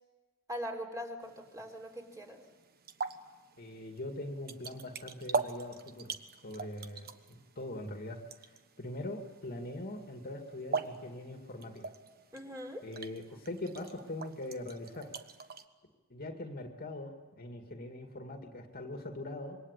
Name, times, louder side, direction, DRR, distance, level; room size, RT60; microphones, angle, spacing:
voice 1, 0.5-2.4 12.3-12.9, equal, 15° right, 2 dB, 3.8 m, -41 dB
sound 1, 1.2-15.6, right 4 dB, 45° right, 1.3 m, -42 dB
voice 2, 3.6-6.2 6.4-8.2 8.5-11.9 12.8-15.1 16.1-19.6, left 1 dB, 45° left, 4 dB, 2.3 m, -42 dB
26.5 x 23.0 x 8.3 m, 1.3 s
head